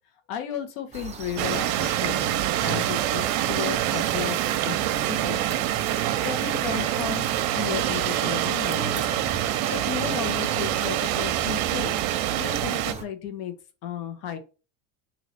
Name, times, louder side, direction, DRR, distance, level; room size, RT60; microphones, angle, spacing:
voice 1, 0.3-4.4 4.6-4.7 5.1-5.7 6.0-9.3 9.7-12.0 12.3-13.5 13.8-14.4, left 9 dB, 75° left, 6 dB, 1.1 m, -34 dB
sound 1, 0.9-13.0, right 6 dB, 15° right, 0.5 m, -38 dB
sound 2, 1.4-12.9, right 13 dB, 65° right, 0.6 m, -26 dB
2.9 x 2.8 x 4.4 m, 0.33 s
supercardioid pair, 115°, 49 cm